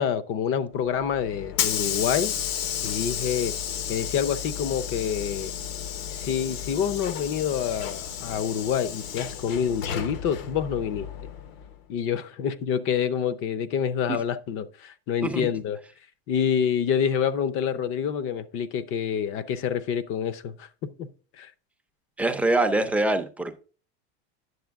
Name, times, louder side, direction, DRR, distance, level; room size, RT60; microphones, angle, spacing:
voice 1, 0.0-2.3 2.8-3.6 3.9-5.5 6.1-11.1 11.9-15.8 16.3-21.1 21.4-21.5, left 8 dB, 40° left, 0.7 m, -27 dB
Hiss / Sliding door, 0.9-11.7, left 9 dB, 65° left, 1.0 m, -32 dB
voice 2, 22.2-23.6, right 2 dB, 5° right, 0.5 m, -24 dB
9.4 x 6.8 x 3.5 m
supercardioid pair, 145°, 32 cm